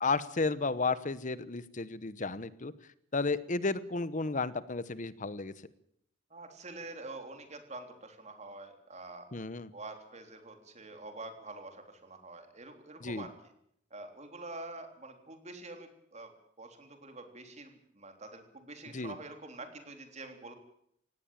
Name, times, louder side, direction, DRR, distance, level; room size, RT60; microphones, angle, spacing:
voice 1, 0.0-2.7 3.1-5.5 9.3-9.7 13.0-13.3 18.9-19.1, left 3 dB, 40° left, 16 dB, 1.0 m, -33 dB
voice 2, 6.3-9.3 9.7-13.3 13.9-20.5, right 2 dB, 35° right, 6 dB, 3.5 m, -46 dB
18.5 x 17.5 x 9.0 m, 0.73 s
head